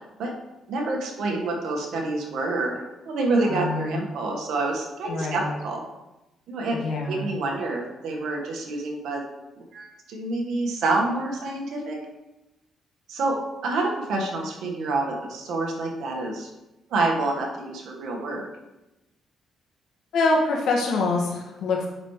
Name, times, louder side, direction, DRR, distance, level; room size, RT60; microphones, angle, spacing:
voice 1, 0.7-5.8 6.5-6.8 7.1-9.2 9.5-12.0 13.1-13.4 13.6-16.5 16.9-18.4, right 2 dB, 75° right, 0 dB, 1.5 m, -27 dB
voice 2, 3.4-4.0 5.1-5.5 6.7-7.3 20.1-21.9, left 3 dB, 75° left, -2 dB, 1.8 m, -25 dB
7.9 x 6.0 x 3.2 m, 1.0 s
cardioid pair, 90°, 0 cm